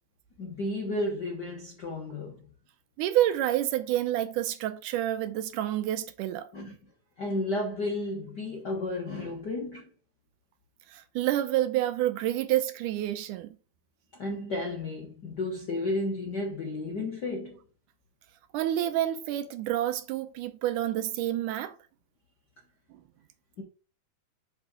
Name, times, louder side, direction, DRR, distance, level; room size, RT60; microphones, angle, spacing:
voice 1, 0.4-2.4 6.5-6.7 7.2-9.9 14.2-17.6 23.6-23.7, left 2 dB, 60° left, 1.0 m, -32 dB
voice 2, 3.0-6.5 10.9-13.5 18.5-21.7, right 13 dB, 80° right, 2.1 m, -28 dB
6.2 x 5.9 x 3.8 m
omnidirectional pair, 3.7 m